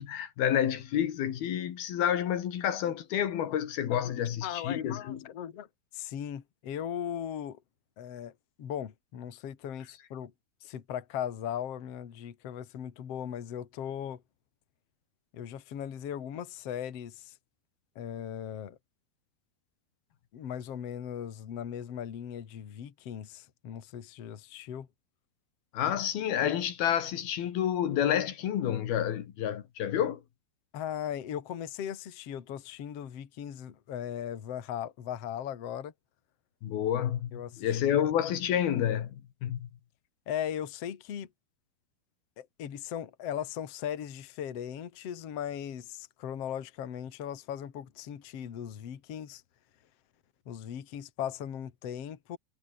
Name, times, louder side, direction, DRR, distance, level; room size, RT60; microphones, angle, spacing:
voice 1, 0.0-5.2 25.7-30.2 36.6-39.2 39.4-39.7, left 10 dB, 75° left, 3.8 m, -29 dB
voice 2, 4.0-5.7 5.9-7.6 8.0-8.3 8.6-10.3 10.6-14.2 15.3-17.4 18.0-18.8 20.3-24.9 30.7-35.9 37.3-38.0 40.3-41.3 42.4-49.4 50.5-52.4, left 9 dB, 45° left, 2.6 m, -38 dB
omnidirectional pair, 4.4 m